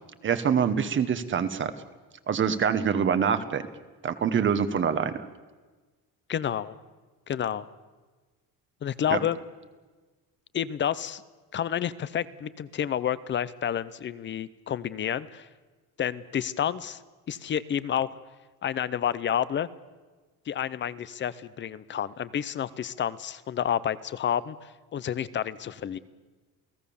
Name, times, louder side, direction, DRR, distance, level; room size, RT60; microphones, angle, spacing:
voice 1, 0.2-1.7 2.3-3.7 4.0-5.3 9.1-9.2, right 7 dB, 30° right, 10 dB, 1.1 m, -25 dB
voice 2, 6.3-6.8 7.3-7.7 8.8-9.4 10.5-11.2 11.5-15.5 16.0-17.0 17.3-18.1 18.6-19.7 20.5-26.0, left 9 dB, 30° left, 18 dB, 0.7 m, -30 dB
28.5 x 18.0 x 7.1 m, 1.3 s
cardioid pair, 175°, 39 cm